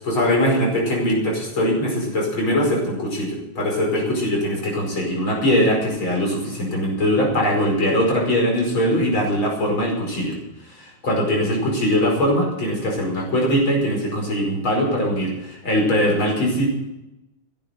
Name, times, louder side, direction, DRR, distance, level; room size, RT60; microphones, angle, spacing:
voice 1, 0.0-10.4 10.7-16.7, equal, 70° left, 0 dB, 6.1 m, -21 dB
16.0 x 11.0 x 6.7 m, 0.92 s
omnidirectional pair, 2.3 m